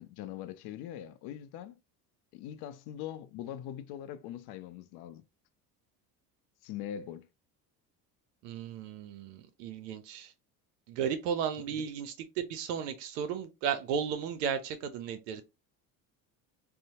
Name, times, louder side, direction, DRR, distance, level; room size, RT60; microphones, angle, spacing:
voice 1, 0.0-1.8 2.3-5.2 6.6-7.3, left 10 dB, 55° left, 0.5 m, -42 dB
voice 2, 8.4-10.3 10.9-15.4, right 7 dB, 80° right, 0.5 m, -34 dB
2.7 x 2.0 x 2.8 m
hypercardioid pair, 80°, 47 cm